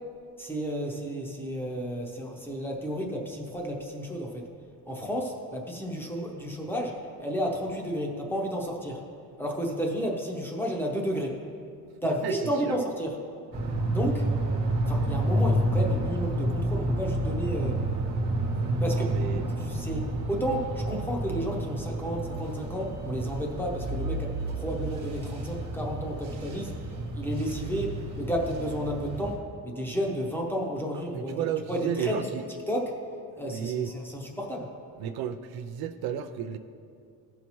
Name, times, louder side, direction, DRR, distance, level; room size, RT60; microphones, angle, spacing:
voice 1, 0.4-4.4 4.9-9.0 9.4-11.4 12.0-13.1 13.9-14.3 14.9-17.8 18.8-19.2 19.6-26.7 27.1-32.2 32.7-32.9 33.3-34.7, equal, 5° left, -1 dB, 0.8 m, -32 dB
voice 2, 12.0-12.3 12.6-12.8 18.7-19.4 31.1-32.4 33.4-33.9 35.0-36.6, right 9 dB, 70° right, 9 dB, 0.5 m, -33 dB
sound 1, 13.5-29.4, right 1 dB, 45° right, 1.3 m, -30 dB
15.5 x 5.7 x 3.1 m, 2.3 s
cardioid pair, 175°, 38 cm